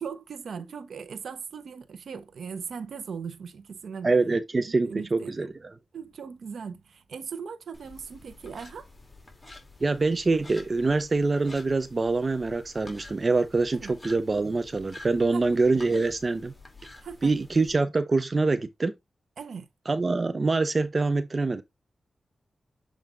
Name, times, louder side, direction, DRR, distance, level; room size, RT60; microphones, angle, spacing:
voice 1, 0.0-4.1 4.7-5.5 5.9-8.9 13.7-13.9 15.3-15.4 17.0-17.3 19.4-19.7, right 6 dB, 80° right, 0.9 m, -38 dB
voice 2, 4.0-5.5 9.8-16.5 17.2-18.9 19.9-21.6, right 3 dB, 40° right, 0.6 m, -25 dB
sound 1, 7.7-17.7, left 2 dB, 20° left, 2.3 m, -49 dB
7.5 x 3.4 x 3.7 m
cardioid pair, 65°, 0 cm